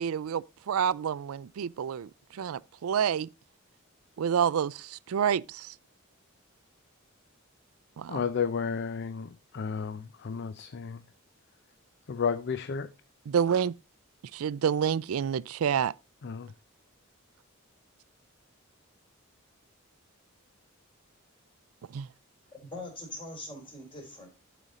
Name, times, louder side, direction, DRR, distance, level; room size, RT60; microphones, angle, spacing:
voice 1, 0.0-3.3 4.2-5.7 8.0-8.3 13.3-13.7 14.3-15.9 21.9-22.1, right 8 dB, 85° right, 0.4 m, -28 dB
voice 2, 8.1-11.0 12.1-12.9 16.2-16.5, left 6 dB, 55° left, 0.5 m, -32 dB
voice 3, 22.5-24.3, left 2 dB, 25° left, 3.7 m, -42 dB
11.5 x 5.1 x 4.1 m
head